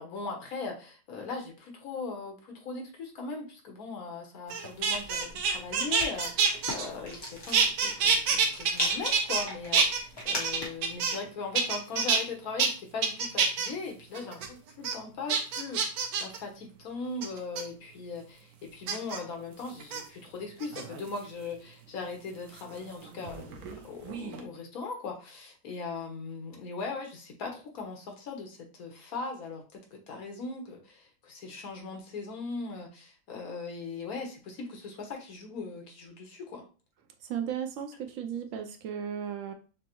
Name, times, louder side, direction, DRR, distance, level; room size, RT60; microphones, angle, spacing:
voice 1, 0.0-36.6, left 4 dB, 75° left, 2 dB, 1.4 m, -39 dB
sound 1, 4.5-7.3 7.5-9.5 9.7-11.3 11.6-12.2 12.6-12.7 13.0-13.7 14.1-14.5 14.8-14.9 15.3-16.4 17.2-17.6 18.9-19.2 19.8-20.0 20.6-21.2 22.6-23.8 24.0-24.4, right 5 dB, 85° right, 1.2 m, -27 dB
Rattle, 4.8-10.9, left 1 dB, 20° left, 0.9 m, -39 dB
voice 2, 37.2-39.5, right 8 dB, 65° right, 5 dB, 0.9 m, -35 dB
6.1 x 2.0 x 2.9 m, 0.36 s
omnidirectional pair, 1.6 m